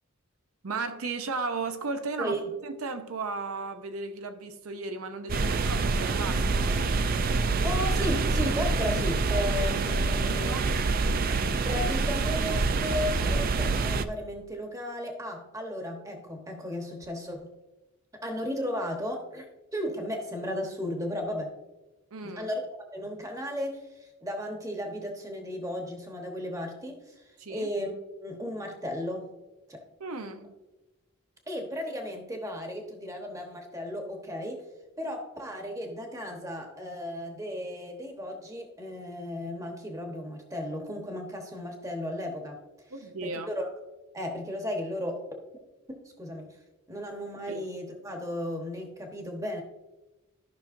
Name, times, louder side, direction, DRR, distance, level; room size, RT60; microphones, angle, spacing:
voice 1, 0.6-6.8 10.1-10.7 22.1-22.5 27.4-27.7 30.0-30.5 42.9-43.5 46.9-47.0 47.5-47.7, right 3 dB, 80° right, 0.7 m, -35 dB
voice 2, 2.2-2.5 7.6-10.6 11.2-17.5 18.2-21.5 22.2-29.3 29.7-29.8 31.5-34.6 35.0-42.6 43.2-43.7 44.1-45.2 45.9-46.6 46.9-49.6, left 1 dB, 15° right, 1.1 m, -35 dB
sound 1, 5.3-14.0, right 3 dB, 40° right, 0.4 m, -26 dB
13.5 x 5.8 x 2.6 m
head